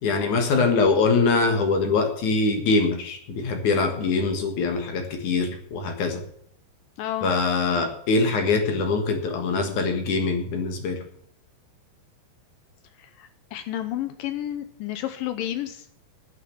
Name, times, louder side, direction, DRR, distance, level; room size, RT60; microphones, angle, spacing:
voice 1, 0.0-6.2 7.2-11.0, left 4 dB, 55° left, 5 dB, 2.6 m, -23 dB
voice 2, 7.0-7.3 13.0-15.9, left 12 dB, 75° left, 10 dB, 2.2 m, -31 dB
9.7 x 9.4 x 7.3 m, 0.66 s
omnidirectional pair, 4.6 m